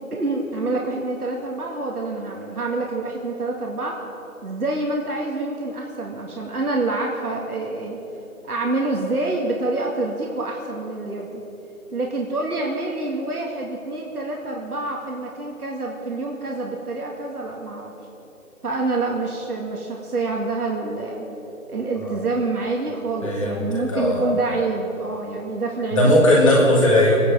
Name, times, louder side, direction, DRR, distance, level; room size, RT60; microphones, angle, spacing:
voice 1, 0.1-4.0 4.4-8.0 8.4-11.4 11.9-17.9 18.6-21.3 21.7-26.2, right 2 dB, 85° right, -1 dB, 2.1 m, -27 dB
voice 2, 23.2-24.2 25.9-27.1, left 1 dB, 20° left, -4 dB, 2.5 m, -18 dB
24.5 x 10.0 x 5.0 m, 3.0 s
figure-of-eight pair, 175°, 44 cm